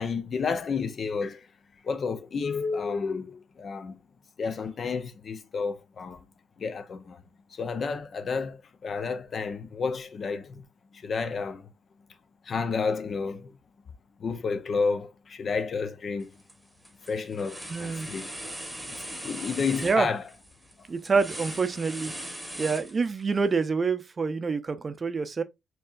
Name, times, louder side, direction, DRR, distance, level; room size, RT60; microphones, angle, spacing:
voice 1, 0.0-1.5 1.8-4.0 4.4-6.2 6.6-7.2 7.5-10.6 10.9-11.7 12.5-13.5 14.2-16.3 17.1-18.3 18.9-20.2, left 5 dB, 45° left, 0.5 m, -31 dB
sound 1, 16.2-16.5 16.8-23.4, right 1 dB, 5° right, 1.0 m, -40 dB
voice 2, 17.7-18.1 19.8-20.1 20.9-22.1 22.6-25.4, right 4 dB, 35° right, 0.6 m, -27 dB
4.5 x 2.8 x 2.4 m
cardioid pair, 90°, 0 cm